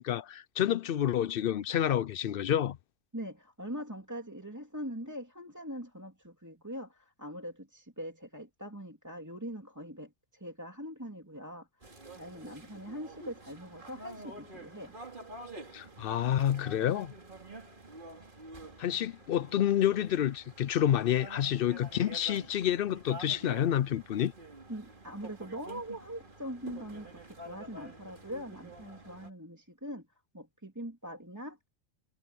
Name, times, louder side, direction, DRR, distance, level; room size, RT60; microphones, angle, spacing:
voice 1, 0.0-2.8 15.7-17.1 18.8-24.3, left 10 dB, 60° left, 0.6 m, -29 dB
voice 2, 3.1-15.0 24.7-30.0 30.3-31.7, equal, 15° right, 2.7 m, -42 dB
sound 1, 11.8-29.3, right 2 dB, 45° right, 2.6 m, -49 dB
omnidirectional pair, 1.2 m